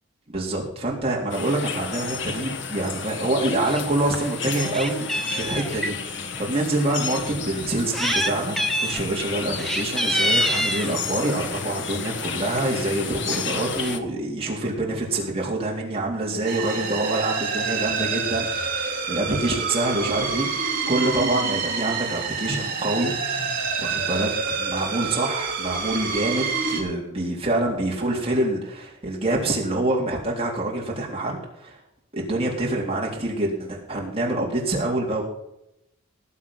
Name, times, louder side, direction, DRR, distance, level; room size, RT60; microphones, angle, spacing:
voice 1, 0.3-23.2 23.8-31.8 32.1-35.2, right 2 dB, 30° right, -2 dB, 3.9 m, -26 dB
sound 1, 1.3-14.0, left 6 dB, 60° left, 1.3 m, -32 dB
Meow, 3.6-3.8 4.2-5.9 6.7-6.8 7.7-8.3 8.6-9.0 9.5-11.0 11.9-12.2 12.6-12.7 12.9-13.0 13.3-14.0, equal, ahead, 1.0 m, -26 dB
sound 2, 16.5-26.8, right 5 dB, 45° right, 3.3 m, -27 dB
19.0 x 7.6 x 5.8 m, 0.84 s
head